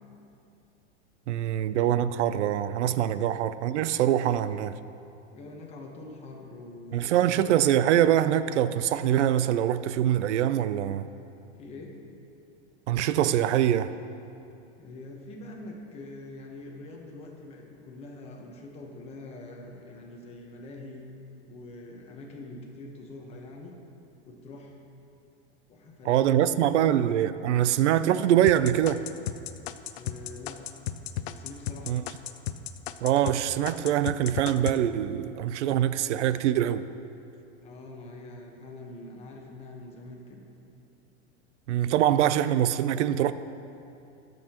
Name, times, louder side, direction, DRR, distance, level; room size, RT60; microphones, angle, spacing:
voice 1, 1.3-4.7 6.9-11.1 12.9-13.9 26.1-29.0 31.9-32.0 33.0-36.9 41.7-43.3, right 11 dB, 90° right, 0.6 m, -24 dB
voice 2, 5.3-7.6 11.6-12.0 14.8-21.1 21.4-23.8 24.2-24.8 25.7-26.8 29.9-30.6 31.2-32.0 37.6-40.5, left 2 dB, 20° left, 1.1 m, -44 dB
sound 1, 28.5-33.4 33.7-34.8, left 12 dB, 70° left, 0.6 m, -34 dB
22.5 x 7.9 x 3.0 m
supercardioid pair, 165°, 34 cm